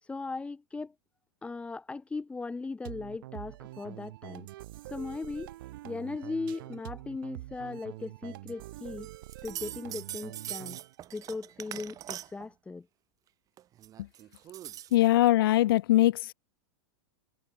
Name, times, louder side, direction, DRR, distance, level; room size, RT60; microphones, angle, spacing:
voice 1, 0.0-0.9 1.4-4.5 4.9-5.5 5.8-9.1 9.4-10.8 11.1-12.9, left 3 dB, 10° left, 3.6 m, -38 dB
sound 1, 2.8-11.0, right 16 dB, 65° right, 4.9 m, -45 dB
sound 2, 9.0-12.5 13.6-15.1, right 12 dB, 30° right, 1.9 m, -42 dB
voice 2, 14.9-16.3, left 15 dB, 70° left, 0.8 m, -22 dB
supercardioid pair, 135°, 12 cm